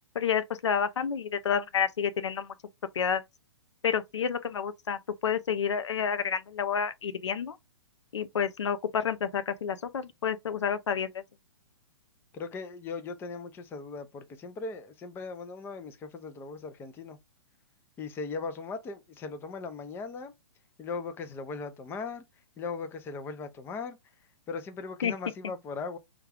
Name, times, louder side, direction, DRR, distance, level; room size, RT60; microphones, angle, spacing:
voice 1, 0.2-2.5 3.0-3.2 3.8-7.6 8.1-11.1 25.0-25.1, left 7 dB, 85° left, 0.5 m, -29 dB
voice 2, 12.3-17.2 18.0-20.3 20.8-22.2 22.6-24.0 24.5-26.0, left 4 dB, 15° left, 0.5 m, -38 dB
3.3 x 2.3 x 3.4 m
hypercardioid pair, 130°, 15 cm